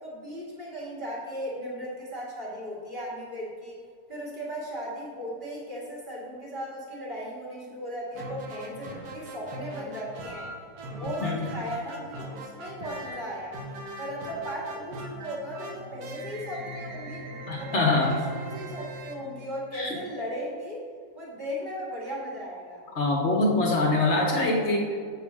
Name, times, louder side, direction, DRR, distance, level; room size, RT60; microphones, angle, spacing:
voice 1, 0.0-3.8 4.1-10.5 10.9-13.6 14.0-17.3 17.6-20.8 21.2-22.8, equal, 30° right, -6 dB, 2.0 m, -37 dB
sound 1, 8.1-20.0, right 1 dB, 65° right, 1.2 m, -40 dB
voice 2, 11.0-11.5 17.5-18.1 19.7-20.0 22.9-25.0, left 2 dB, 50° left, 1 dB, 1.1 m, -24 dB
7.8 x 4.2 x 6.1 m, 2.1 s
omnidirectional pair, 1.7 m